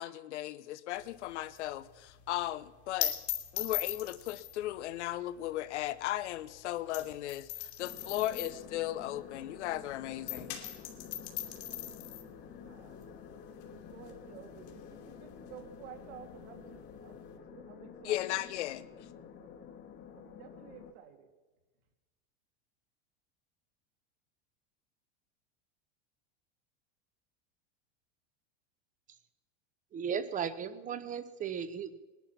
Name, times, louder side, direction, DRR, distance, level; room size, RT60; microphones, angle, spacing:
voice 1, 0.0-3.1 3.5-10.6 18.0-18.8, left 14 dB, 90° left, 15 dB, 0.9 m, -36 dB
sound 1, 1.0-9.8 10.1-17.4, left 12 dB, 70° left, 2.7 m, -41 dB
sound 2, 7.8-20.9, left 7 dB, 35° left, 1.4 m, -50 dB
voice 2, 12.6-13.0 13.6-18.3 19.4-21.3, right 9 dB, 70° right, 4 dB, 2.6 m, -53 dB
voice 3, 29.9-32.0, right 7 dB, 25° right, 13 dB, 0.9 m, -36 dB
20.0 x 11.5 x 5.8 m, 1.2 s
supercardioid pair, 145°, 34 cm